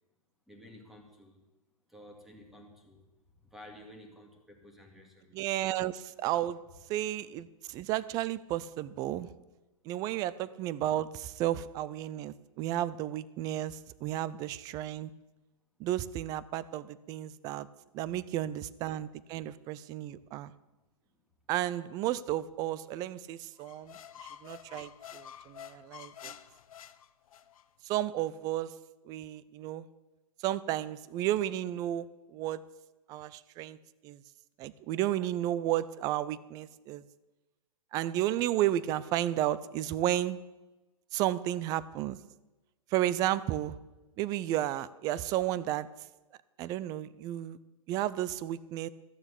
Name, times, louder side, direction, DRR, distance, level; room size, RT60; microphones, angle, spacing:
voice 1, 0.5-1.4 1.9-3.1 3.4-5.4 12.4-12.5 18.1-18.2 20.1-20.2 20.7-21.2, left 1 dB, ahead, 2 dB, 2.1 m, -53 dB
voice 2, 5.3-6.6 6.9-9.3 9.9-15.1 15.8-17.7 17.9-20.5 21.5-26.3 27.8-28.8 29.0-29.9 30.4-32.6 33.1-33.8 34.0-34.2 34.6-37.0 37.9-40.4 41.1-42.2 42.9-43.8 44.2-45.9 46.6-47.6 47.9-48.9, right 13 dB, 20° right, 18 dB, 0.4 m, -33 dB
sound 1, 23.6-27.7, left 9 dB, 65° left, 0.9 m, -49 dB
14.0 x 7.0 x 8.3 m, 1.1 s
hypercardioid pair, 145°, 19 cm